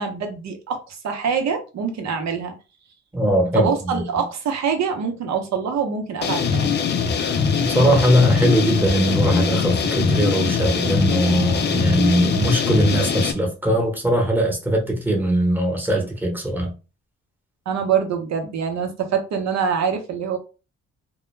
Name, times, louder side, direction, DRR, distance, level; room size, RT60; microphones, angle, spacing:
voice 1, 0.0-2.5 3.5-6.8 17.7-20.4, right 6 dB, 60° right, 0.8 m, -25 dB
voice 2, 3.1-4.0 7.2-16.7, right 1 dB, 5° right, 1.0 m, -20 dB
sound 1, 6.2-13.3, left 6 dB, 35° left, 0.4 m, -22 dB
2.2 x 2.2 x 3.1 m
cardioid pair, 90°, 30 cm